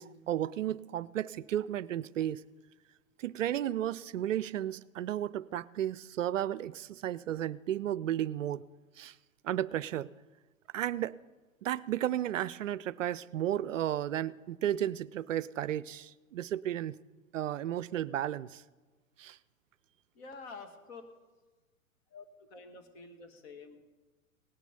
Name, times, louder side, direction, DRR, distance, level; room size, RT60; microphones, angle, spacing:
voice 1, 0.0-2.4 3.2-8.6 9.0-9.1 9.4-10.1 10.7-11.2 11.6-16.9 17.3-18.6 19.2-19.4, right 11 dB, 65° right, 20 dB, 0.5 m, -33 dB
voice 2, 20.1-21.0 22.1-23.8, left 4 dB, 50° left, 5 dB, 2.1 m, -48 dB
18.0 x 9.1 x 5.3 m, 1.2 s
figure-of-eight pair, 110°, 42 cm